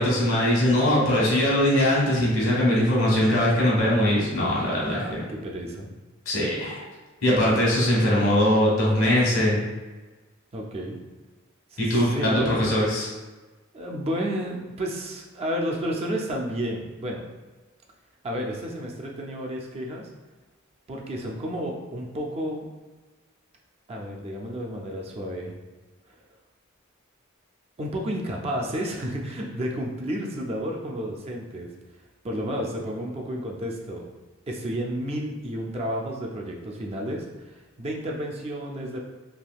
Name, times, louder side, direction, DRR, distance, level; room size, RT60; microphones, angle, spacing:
voice 1, 0.0-5.2 6.3-6.8 7.2-9.6 11.8-13.1, left 1 dB, 70° left, -5 dB, 1.2 m, -21 dB
voice 2, 4.5-5.9 10.5-11.0 11.7-12.6 13.7-17.2 18.2-20.1 20.9-22.7 23.9-25.5 26.1-26.2 27.8-31.7 32.2-34.1 34.5-39.0, equal, 30° right, 0 dB, 0.4 m, -31 dB
3.3 x 2.6 x 2.3 m, 1.2 s
head